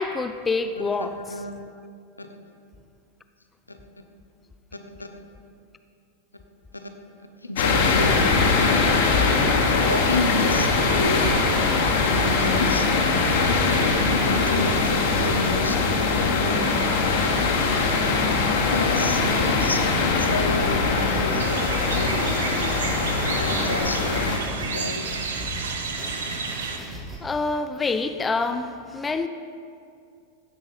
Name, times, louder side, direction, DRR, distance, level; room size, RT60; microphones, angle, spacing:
voice 1, 0.0-1.2 12.6-12.7 26.6-26.9 27.2-29.3, left 3 dB, 15° left, 9 dB, 0.4 m, -27 dB
voice 2, 1.0-1.5 2.2-2.3 3.7-3.8 4.7-5.2 6.7-6.9 7.4-8.2 9.8-11.3 12.1-12.8 13.9-15.9 16.2-16.8 18.7-22.2 23.3-24.4 24.6-25.2, left 1 dB, 80° left, 5 dB, 0.8 m, -30 dB
sound 1, 7.6-24.4, left 4 dB, 55° left, 1.4 m, -22 dB
sound 2, 18.8-27.2, right 1 dB, 15° right, 2.0 m, -38 dB
sound 3, 21.4-26.8, right 4 dB, 65° right, 0.9 m, -31 dB
16.5 x 6.4 x 4.2 m, 2.4 s
figure-of-eight pair, 90°, 0 cm